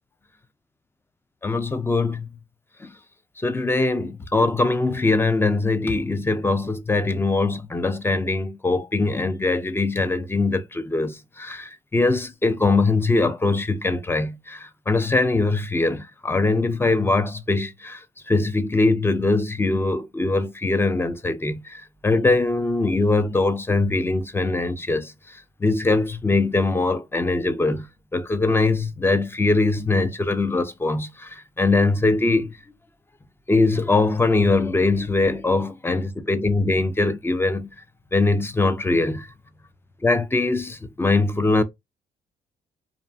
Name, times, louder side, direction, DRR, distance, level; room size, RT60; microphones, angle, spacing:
voice 1, 1.4-2.3 2.8-2.9 3.4-18.0 18.3-25.1 25.6-32.5 33.5-37.7 38.1-39.3 40.0-41.6, left 3 dB, 15° left, 0.4 m, -22 dB
2.4 x 2.4 x 2.2 m
supercardioid pair, 70°, 16 cm